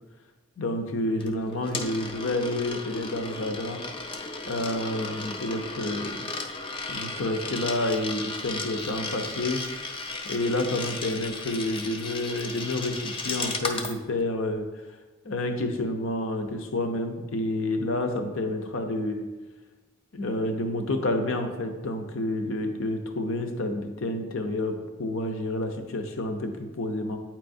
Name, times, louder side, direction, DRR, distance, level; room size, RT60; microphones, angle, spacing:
voice 1, 0.6-3.8 4.5-6.3 6.9-14.8 15.2-19.3 20.1-27.2, left 1 dB, 70° left, 6 dB, 0.6 m, -29 dB
Coin (dropping), 1.2-14.0, left 3 dB, 25° left, 0.3 m, -35 dB
8.7 x 4.5 x 2.6 m, 1.2 s
head